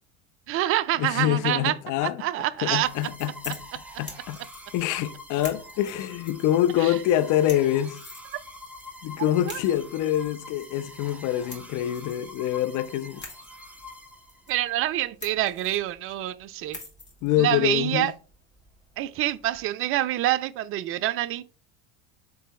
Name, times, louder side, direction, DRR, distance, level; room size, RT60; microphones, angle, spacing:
voice 1, 0.5-1.7 2.0-2.9 6.8-6.9 9.5-9.6 14.5-16.8 17.4-18.1 19.0-21.4, right 14 dB, 35° right, 0.4 m, -26 dB
voice 2, 1.0-2.2 2.6-3.6 4.0-4.4 4.7-8.0 9.0-13.2 17.2-18.1, left 12 dB, 45° left, 0.6 m, -25 dB
sound 1, 2.7-19.6, left 2 dB, 25° left, 2.2 m, -48 dB
sound 2, 2.8-14.7, left 1 dB, 5° right, 0.8 m, -45 dB
3.7 x 3.3 x 4.3 m
hypercardioid pair, 80°, 42 cm